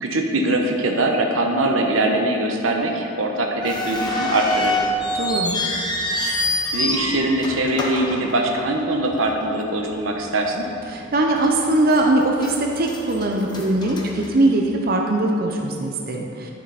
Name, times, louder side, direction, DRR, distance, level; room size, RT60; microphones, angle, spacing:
voice 1, 0.0-4.8 6.7-10.7, right 1 dB, 90° right, 2 dB, 1.0 m, -22 dB
sound 1, 3.6-8.9 9.2-9.3 10.1-10.3 10.7-10.8 11.4-12.0 12.4-14.8, left 1 dB, 20° left, 1.0 m, -26 dB
voice 2, 5.2-5.6 10.9-16.5, right 2 dB, 50° right, 1 dB, 0.7 m, -21 dB
11.0 x 6.9 x 4.1 m, 2.7 s
head